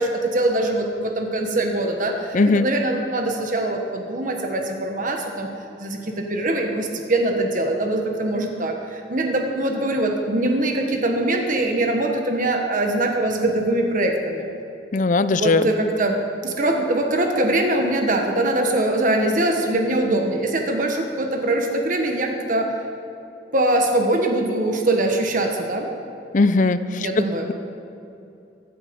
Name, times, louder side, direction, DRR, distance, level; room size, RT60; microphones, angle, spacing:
voice 1, 0.0-5.5 5.8-14.4 15.3-16.2 16.4-22.7 23.5-25.9 27.0-27.5, right 1 dB, 50° right, 3 dB, 1.4 m, -22 dB
voice 2, 2.3-2.7 14.9-15.7 26.3-27.1, left 3 dB, 45° left, 13 dB, 0.6 m, -18 dB
16.0 x 12.0 x 5.3 m, 2.7 s
head